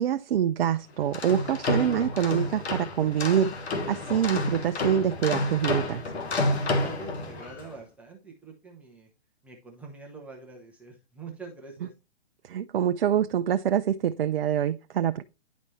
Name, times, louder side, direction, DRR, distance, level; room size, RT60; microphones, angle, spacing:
voice 1, 0.0-6.0 12.4-15.2, right 9 dB, 55° right, 0.4 m, -25 dB
sound 1, 1.0-7.7, left 2 dB, 70° left, 1.5 m, -30 dB
voice 2, 6.5-9.1 9.4-11.9, right 4 dB, 5° right, 0.5 m, -45 dB
10.0 x 4.2 x 3.1 m
hypercardioid pair, 135°, 34 cm